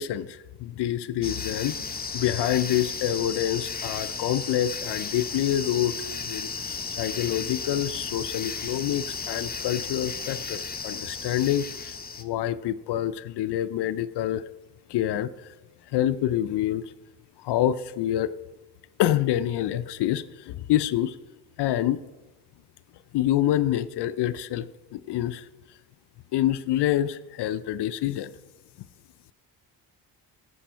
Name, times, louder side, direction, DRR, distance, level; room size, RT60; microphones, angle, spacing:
voice 1, 0.0-1.8 2.1-6.5 7.0-14.4 14.9-15.5 15.9-16.9 17.4-18.3 19.0-21.2 21.6-22.0 23.1-24.7 24.9-25.5 26.3-28.3, left 12 dB, 75° left, 14 dB, 0.5 m, -27 dB
sound 1, 1.2-12.2, left 5 dB, 20° left, 0.8 m, -34 dB
10.0 x 7.0 x 5.6 m, 1.1 s
cardioid pair, 85°, 41 cm